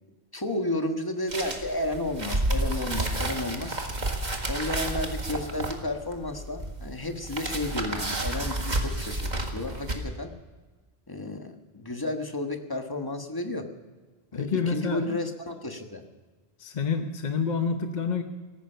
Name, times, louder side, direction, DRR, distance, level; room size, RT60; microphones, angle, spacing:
voice 1, 0.3-3.7 4.5-10.3 11.1-13.6 14.3-16.0, left 2 dB, 20° left, 5 dB, 1.4 m, -32 dB
sound 1, 1.3-9.9, right 1 dB, 45° right, 1.9 m, -31 dB
voice 2, 14.3-15.2 16.6-18.2, left 5 dB, 45° left, 6 dB, 0.9 m, -28 dB
17.5 x 14.5 x 5.6 m, 1.3 s
omnidirectional pair, 1.1 m